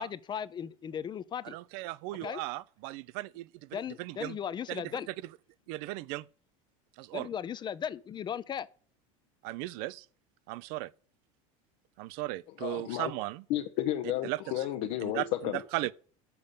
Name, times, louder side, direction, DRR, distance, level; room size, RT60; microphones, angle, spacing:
voice 1, 0.0-1.6 2.2-2.4 3.7-5.1 7.1-8.7, left 8 dB, 25° left, 0.5 m, -37 dB
voice 2, 1.4-4.4 4.7-4.8 5.7-6.2 7.0-7.3 9.4-10.1 10.5-10.9 12.0-13.4 14.2-14.7 15.0-15.9, right 18 dB, 65° right, 0.5 m, -37 dB
voice 3, 12.6-13.1 13.5-15.6, left 13 dB, 65° left, 0.9 m, -32 dB
7.0 x 5.2 x 6.8 m
supercardioid pair, 110°, 17 cm